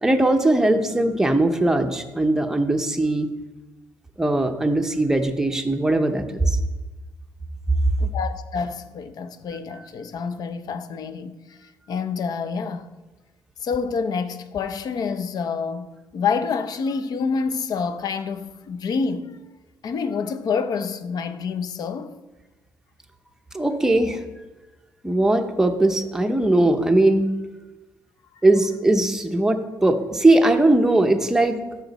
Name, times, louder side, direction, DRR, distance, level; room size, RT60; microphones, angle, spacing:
voice 1, 0.0-3.3 4.2-6.6 23.5-24.2 25.0-27.3 28.4-31.6, right 2 dB, 5° right, 0.6 m, -20 dB
voice 2, 8.0-12.9 13.6-19.4 19.8-22.1, left 5 dB, 55° left, 0.6 m, -28 dB
13.5 x 5.0 x 4.0 m
cardioid pair, 135°, 8 cm